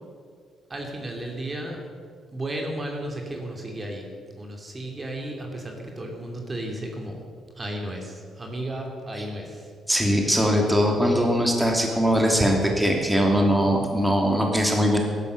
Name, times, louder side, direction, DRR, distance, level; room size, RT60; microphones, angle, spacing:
voice 1, 0.7-1.8 2.3-4.0 4.4-7.1 7.6-8.0 8.4-9.4, right 1 dB, 25° right, 1 dB, 2.6 m, -33 dB
voice 2, 9.9-15.0, equal, 5° right, 1 dB, 2.7 m, -21 dB
15.0 x 12.0 x 6.7 m, 2.1 s
cardioid pair, 90°, 0 cm